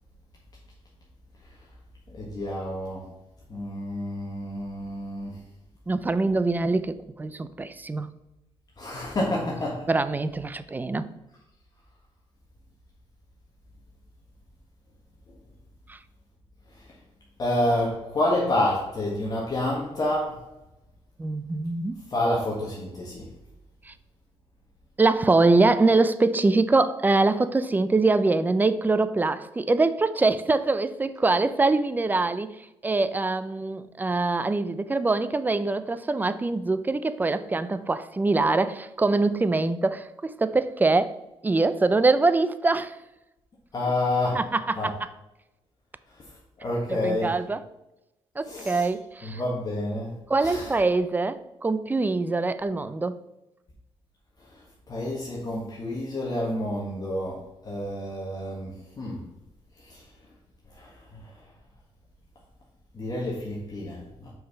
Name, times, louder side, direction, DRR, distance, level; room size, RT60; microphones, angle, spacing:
voice 1, 2.1-3.1 3.5-5.4 8.8-9.9 17.4-20.4 22.1-23.3 43.7-44.4 44.8-44.9 46.6-47.4 48.4-48.9 49.2-50.7 54.5-59.2 59.8-60.0 60.7-61.3 62.9-64.3, left 1 dB, 35° left, 1.5 m, -29 dB
voice 2, 5.9-8.1 9.9-11.1 15.9-16.0 21.2-22.0 23.9-24.0 25.0-32.5 32.8-41.2 41.4-42.9 44.3-44.9 46.9-47.6 48.4-49.4 50.3-53.2, right 3 dB, 15° right, 0.5 m, -24 dB
6.2 x 4.7 x 5.7 m
cardioid pair, 110°, 11 cm